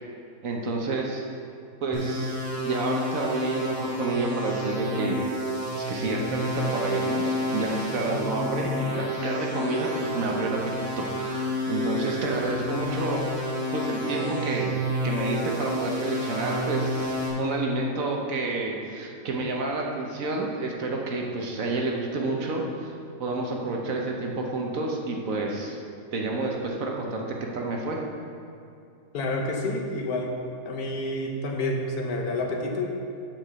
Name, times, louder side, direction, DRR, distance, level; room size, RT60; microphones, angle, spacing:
voice 1, 0.4-1.2 1.8-5.2 5.7-14.7 15.0-22.9 23.2-25.8 26.1-27.2 27.5-28.0, right 2 dB, 60° right, 0 dB, 1.2 m, -29 dB
sound 1, 1.9-17.3, equal, 10° left, 1.8 m, -30 dB
voice 2, 29.1-30.4 30.6-32.9, left 2 dB, 70° left, 2 dB, 1.4 m, -29 dB
7.8 x 4.8 x 6.8 m, 2.5 s
omnidirectional pair, 1.7 m